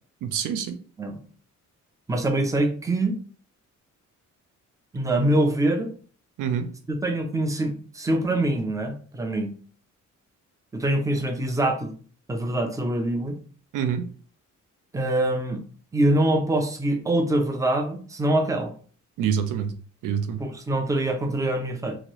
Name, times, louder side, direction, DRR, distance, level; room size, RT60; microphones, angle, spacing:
voice 1, 0.2-0.8 6.4-6.7 13.7-14.0 19.2-19.7 20.0-20.4, right 8 dB, 85° right, 8 dB, 0.6 m, -26 dB
voice 2, 2.1-3.1 4.9-5.9 6.9-9.5 10.7-11.9 12.3-13.4 14.9-15.6 15.9-18.7 20.4-22.0, right 1 dB, 10° right, 5 dB, 0.4 m, -24 dB
2.9 x 2.6 x 2.9 m, 0.43 s
wide cardioid pair, 165°, 31 cm